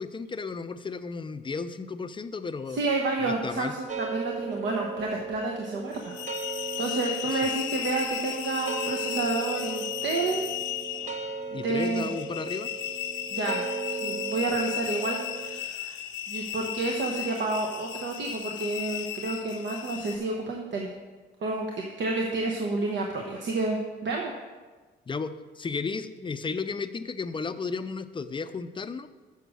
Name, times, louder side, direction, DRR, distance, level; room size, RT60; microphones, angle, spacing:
voice 1, 0.0-2.8 3.2-3.7 7.3-7.4 11.5-12.7 25.1-29.1, left 4 dB, 25° left, 11 dB, 0.5 m, -34 dB
voice 2, 2.7-6.1 6.4-6.5 6.8-10.4 11.6-12.1 13.3-13.6 13.9-16.0 16.3-20.9 21.4-21.7 22.0-24.3, right 3 dB, 70° right, 0 dB, 1.0 m, -30 dB
sound 1, 3.9-15.6, right 5 dB, 40° right, 0.5 m, -37 dB
sound 2, 5.9-20.2, left 12 dB, 75° left, 0.6 m, -35 dB
6.8 x 6.5 x 6.3 m, 1.3 s
cardioid pair, 90°, 20 cm